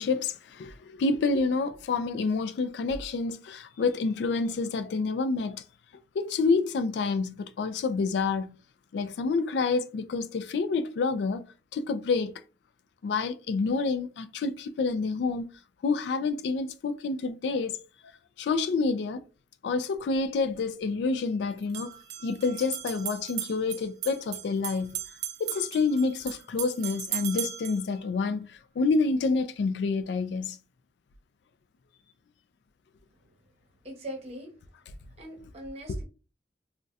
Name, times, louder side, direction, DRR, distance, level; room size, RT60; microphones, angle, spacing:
voice 1, 0.0-5.6 6.1-8.5 8.9-11.4 11.7-12.3 13.0-15.5 15.8-17.7 18.4-19.2 19.6-25.0 25.4-30.6 35.9-36.0, left 4 dB, 70° left, 0.3 m, -28 dB
sound 1, 19.9-20.0 21.6-27.8, right 12 dB, 65° right, 0.4 m, -37 dB
voice 2, 33.8-34.5 35.2-36.0, equal, 35° right, 0.8 m, -40 dB
3.9 x 2.1 x 2.3 m
head